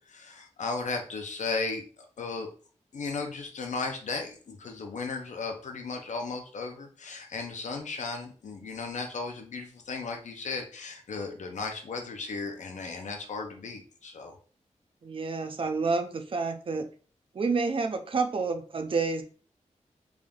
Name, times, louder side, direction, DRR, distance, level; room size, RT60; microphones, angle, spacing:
voice 1, 0.1-1.8 2.2-2.5 2.9-14.3, left 4 dB, 75° left, 4 dB, 0.7 m, -35 dB
voice 2, 15.0-16.9 17.3-19.2, right 4 dB, 45° right, 7 dB, 0.5 m, -29 dB
3.5 x 2.6 x 3.6 m, 0.40 s
wide cardioid pair, 130°, 12 cm